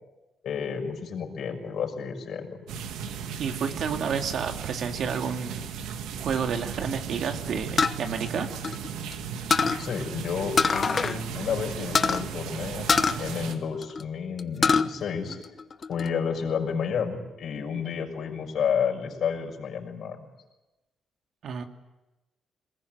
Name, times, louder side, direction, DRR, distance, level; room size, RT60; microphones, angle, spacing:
voice 1, 0.4-2.6 9.8-12.9 13.2-15.4 15.9-20.3, left 6 dB, 65° left, 3 dB, 6.4 m, -31 dB
sound 1, 2.7-13.6, right 7 dB, 90° right, 2.0 m, -36 dB
voice 2, 3.4-5.7 6.2-8.5 21.4-21.6, right 6 dB, 65° right, 5 dB, 2.3 m, -30 dB
sound 2, 7.8-9.1 9.5-9.8 10.6-11.2 11.5-11.6 11.9-12.2 12.9-14.0 14.4-14.9 15.3-16.1, left 5 dB, 40° left, 1.0 m, -24 dB
22.5 x 20.5 x 9.3 m, 1.0 s
cardioid pair, 90°, 0 cm